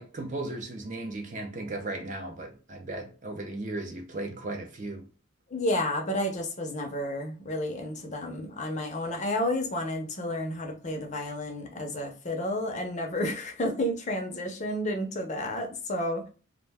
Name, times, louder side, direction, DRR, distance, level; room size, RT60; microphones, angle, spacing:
voice 1, 0.0-5.1, right 2 dB, 35° right, 0.5 m, -36 dB
voice 2, 5.5-16.3, left 1 dB, 35° left, 0.5 m, -31 dB
2.5 x 2.1 x 3.3 m
head